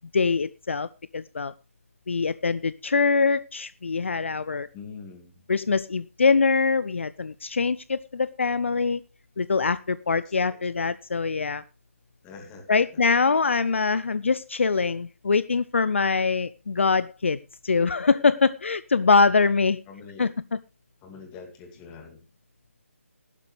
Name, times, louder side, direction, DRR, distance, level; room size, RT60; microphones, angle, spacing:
voice 1, 0.1-0.9 1.1-1.5 2.1-4.7 5.5-9.0 9.4-11.6 12.7-17.4 17.6-19.8 20.2-20.3, left 4 dB, 55° left, 17 dB, 0.5 m, -23 dB
voice 2, 4.7-5.4 10.1-10.6 12.2-13.1 19.9-20.3 21.0-22.2, left 5 dB, 15° left, 4 dB, 2.3 m, -44 dB
15.0 x 12.0 x 3.3 m, 0.29 s
figure-of-eight pair, 150°, 8 cm